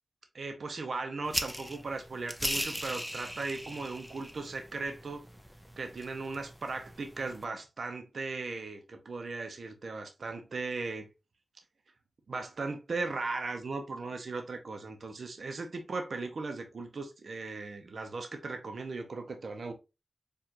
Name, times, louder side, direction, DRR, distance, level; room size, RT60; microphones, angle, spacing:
voice 1, 0.3-5.2 5.8-11.1 12.3-19.7, right 3 dB, 75° right, 0.7 m, -37 dB
sound 1, 1.3-7.4, equal, ahead, 0.5 m, -39 dB
4.6 x 2.5 x 2.9 m
cardioid pair, 60°, 0 cm